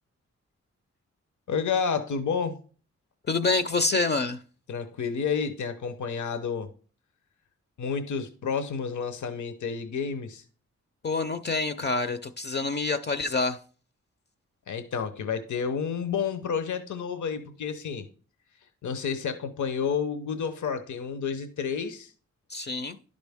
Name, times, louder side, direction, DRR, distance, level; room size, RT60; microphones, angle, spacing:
voice 1, 1.5-2.6 4.7-6.7 7.8-10.4 14.7-18.1 18.8-22.1, left 6 dB, 80° left, 0.8 m, -30 dB
voice 2, 3.3-4.4 11.0-13.6 22.5-23.0, left 3 dB, 35° left, 0.4 m, -27 dB
11.0 x 5.2 x 3.5 m
wide cardioid pair, 150°, 29 cm